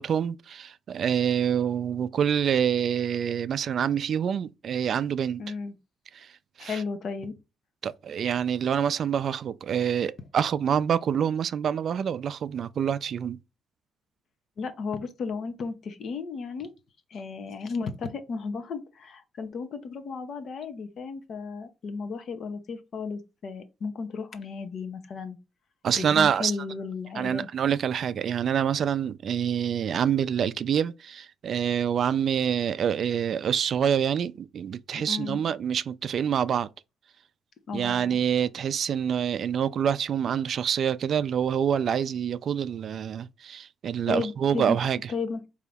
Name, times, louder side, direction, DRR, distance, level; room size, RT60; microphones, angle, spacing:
voice 1, 0.0-5.4 6.2-6.3 6.6-6.8 7.8-13.4 25.8-26.5 27.1-36.7 37.7-45.1, right 8 dB, 60° right, 0.3 m, -26 dB
voice 2, 5.4-5.7 6.6-7.4 14.6-16.7 17.1-25.4 26.0-27.5 35.0-35.4 37.7-38.2 44.1-44.8 45.1-45.4, left 5 dB, 60° left, 0.7 m, -34 dB
3.9 x 2.7 x 3.4 m
cardioid pair, 90°, 0 cm